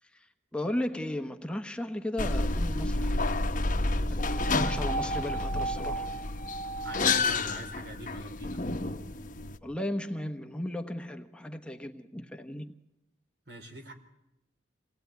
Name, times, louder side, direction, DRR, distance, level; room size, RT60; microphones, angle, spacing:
voice 1, 0.0-3.3 4.1-6.1 9.6-12.7, left 1 dB, 5° left, 1.0 m, -36 dB
sound 1, 2.2-9.6, left 2 dB, 45° left, 1.1 m, -29 dB
voice 2, 6.8-8.6 13.5-13.9, right 1 dB, 65° right, 4.1 m, -45 dB
27.5 x 18.5 x 9.3 m
head